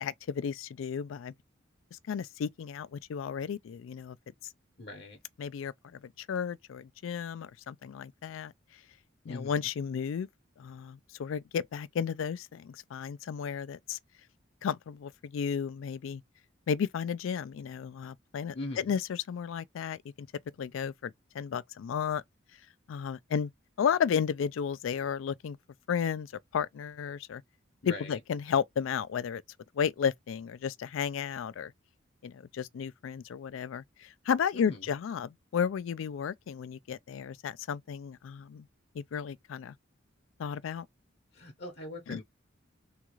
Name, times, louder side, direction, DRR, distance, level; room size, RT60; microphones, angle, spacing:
voice 1, 0.0-1.3 2.1-4.2 5.4-8.5 9.3-10.3 10.6-14.0 14.6-16.2 16.7-20.3 20.6-22.2 22.9-23.5 23.8-25.6 25.9-27.4 27.9-29.4 29.8-31.7 32.2-38.7 38.9-39.7 40.4-40.9 42.1-42.2, left 7 dB, 90° left, 0.3 m, -33 dB
voice 2, 4.8-5.2 9.2-9.7 18.5-19.0 27.8-28.2 34.5-34.9 41.3-42.2, left 2 dB, 55° left, 0.8 m, -41 dB
3.6 x 2.3 x 3.0 m
head